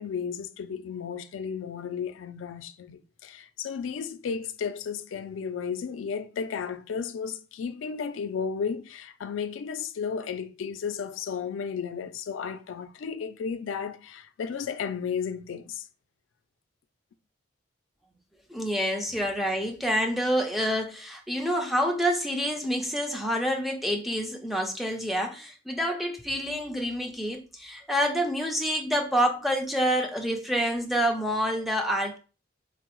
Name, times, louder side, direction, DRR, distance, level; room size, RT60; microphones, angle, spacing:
voice 1, 0.0-15.9, left 6 dB, 85° left, 0.3 m, -33 dB
voice 2, 18.5-32.2, equal, ahead, 0.4 m, -27 dB
4.5 x 2.0 x 2.9 m
head